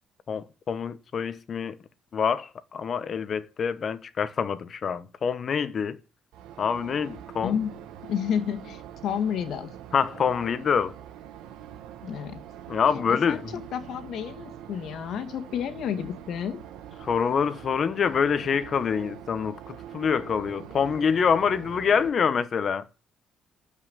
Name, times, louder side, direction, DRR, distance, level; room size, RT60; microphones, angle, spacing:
voice 1, 0.3-1.8 2.1-6.0 6.6-7.5 9.9-10.9 12.7-13.6 17.0-22.8, left 6 dB, 35° left, 1.2 m, -26 dB
sound 1, 6.3-22.1, right 10 dB, 85° right, 1.5 m, -44 dB
voice 2, 7.4-7.7 8.1-9.7 12.0-12.4 13.1-16.6, left 8 dB, 55° left, 1.9 m, -31 dB
13.0 x 5.7 x 9.2 m
cardioid pair, 165°, 0 cm